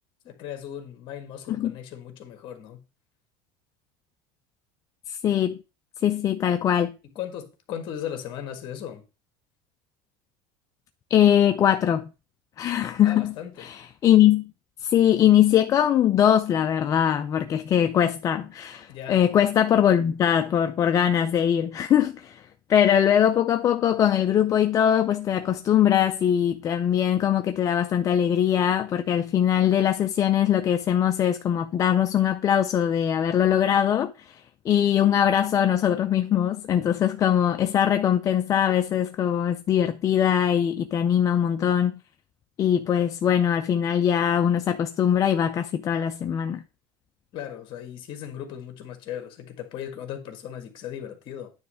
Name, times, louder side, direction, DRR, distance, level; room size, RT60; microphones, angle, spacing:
voice 1, 0.2-2.8 7.2-9.0 13.0-13.7 18.9-19.4 47.3-51.5, left 9 dB, 45° left, 1.7 m, -37 dB
voice 2, 5.1-5.6 6.0-6.9 11.1-12.1 12.6-13.3 13.6-14.5 14.8-22.4 22.7-34.4 34.7-42.0 42.6-46.6, left 9 dB, 30° left, 0.4 m, -21 dB
9.5 x 3.2 x 6.2 m
cardioid pair, 145°, 11 cm